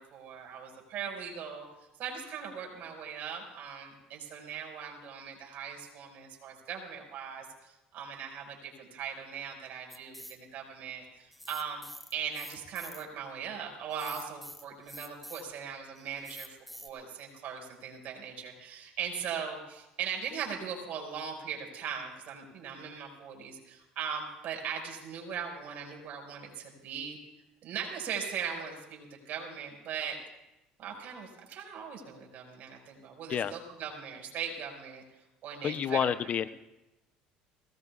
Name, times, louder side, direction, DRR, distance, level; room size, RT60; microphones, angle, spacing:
voice 1, 0.0-1.7 2.0-11.8 12.1-16.6 16.8-27.2 27.6-30.2 30.8-35.0 35.4-36.1, right 7 dB, 60° right, 1 dB, 5.4 m, -39 dB
sound 1, 9.9-10.4 11.3-13.0 13.9-15.5 16.0-16.9, equal, ahead, 2.0 m, -46 dB
voice 2, 35.6-36.5, left 8 dB, 45° left, 13 dB, 0.6 m, -29 dB
24.5 x 19.0 x 2.4 m, 0.94 s
supercardioid pair, 85°, 3 cm